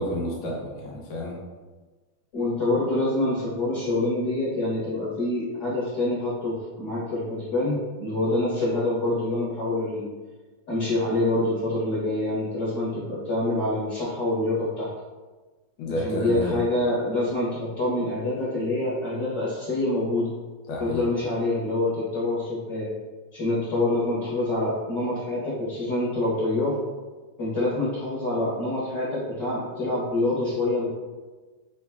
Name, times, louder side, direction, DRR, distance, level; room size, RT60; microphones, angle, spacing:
voice 1, 0.0-1.4 15.8-16.6 20.7-21.0, equal, 80° left, -2 dB, 1.5 m, -30 dB
voice 2, 2.3-10.0 10.7-14.9 15.8-20.3 20.8-22.9 23.3-26.8 27.4-30.9, left 2 dB, 45° left, -12 dB, 1.6 m, -26 dB
6.0 x 3.1 x 2.3 m, 1.3 s
omnidirectional pair, 3.7 m